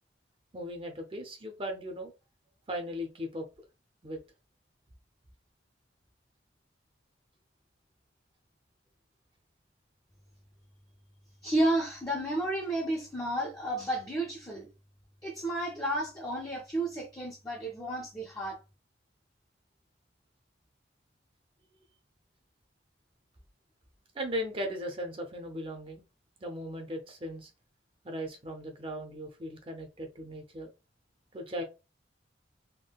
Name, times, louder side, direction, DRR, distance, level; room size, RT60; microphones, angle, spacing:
voice 1, 0.5-2.1 2.7-3.5 4.0-4.2 24.1-26.0 26.4-27.5 28.0-30.7 31.3-31.6, equal, 30° right, 0.6 m, -37 dB
voice 2, 11.4-14.7 15.2-18.6, right 1 dB, 20° left, 0.6 m, -32 dB
3.6 x 2.2 x 2.3 m
head